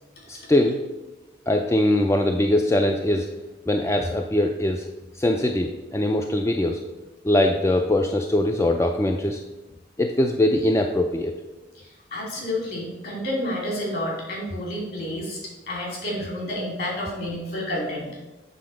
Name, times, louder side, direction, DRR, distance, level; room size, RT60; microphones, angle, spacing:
voice 1, 0.3-0.8 1.5-3.3 3.7-4.9 5.1-6.8 7.2-9.4 10.0-11.3, left 1 dB, 15° left, 4 dB, 0.3 m, -22 dB
voice 2, 11.7-18.2, left 1 dB, 55° left, -3 dB, 2.8 m, -30 dB
7.8 x 3.9 x 6.2 m, 1.1 s
head